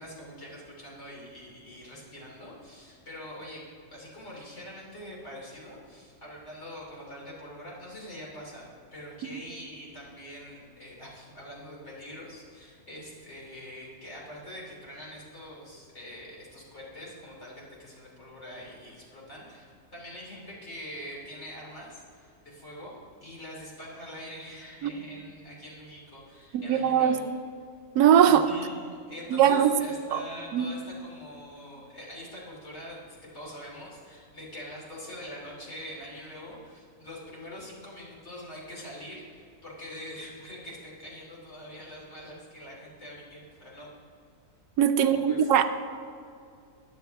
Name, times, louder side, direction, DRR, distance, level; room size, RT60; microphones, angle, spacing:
voice 1, 0.0-3.6 3.9-8.6 8.9-22.9 23.2-27.2 28.2-43.9 45.0-45.5, equal, 45° left, -4 dB, 3.4 m, -44 dB
voice 2, 26.5-27.2 27.9-28.4 29.3-29.7 30.1-30.2 30.5-30.7 44.8-45.6, right 9 dB, 80° right, 9 dB, 1.2 m, -21 dB
14.5 x 10.5 x 3.5 m, 2.4 s
omnidirectional pair, 1.7 m